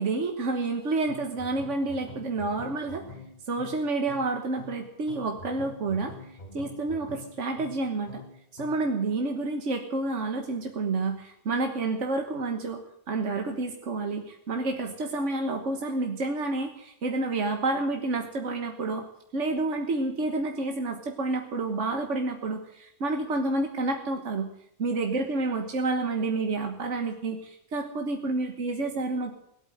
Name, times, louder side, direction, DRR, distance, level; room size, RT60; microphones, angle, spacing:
voice 1, 0.0-3.0 3.5-6.1 6.5-8.2 8.5-12.8 13.1-19.1 19.3-24.5 24.8-29.3, right 3 dB, 80° right, 4 dB, 1.7 m, -29 dB
sound 1, 1.1-8.9, left 3 dB, 35° left, 1.4 m, -45 dB
18.0 x 8.6 x 9.2 m, 0.77 s
omnidirectional pair, 1.2 m